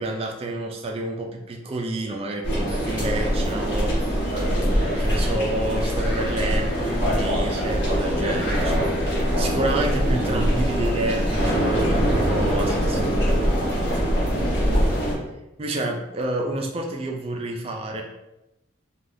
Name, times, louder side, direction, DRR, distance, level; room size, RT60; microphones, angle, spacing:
voice 1, 0.0-13.8 14.3-14.7 15.6-18.0, right 1 dB, 30° right, 2 dB, 0.3 m, -30 dB
sound 1, 2.4-15.1, equal, 55° left, 1.1 m, -23 dB
3.3 x 2.3 x 2.6 m, 0.94 s
head